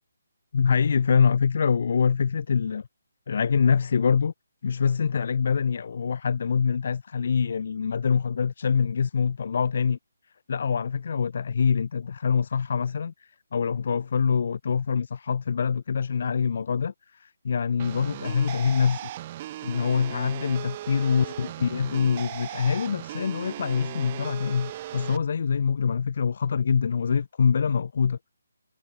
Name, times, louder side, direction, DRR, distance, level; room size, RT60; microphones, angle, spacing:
voice 1, 0.5-2.9 3.3-4.3 4.6-10.0 10.5-19.1 19.6-28.2, left 6 dB, 55° left, 0.5 m, -25 dB
sound 1, 17.8-25.2, right 13 dB, 30° right, 0.5 m, -38 dB
figure-of-eight pair, 150°, 0 cm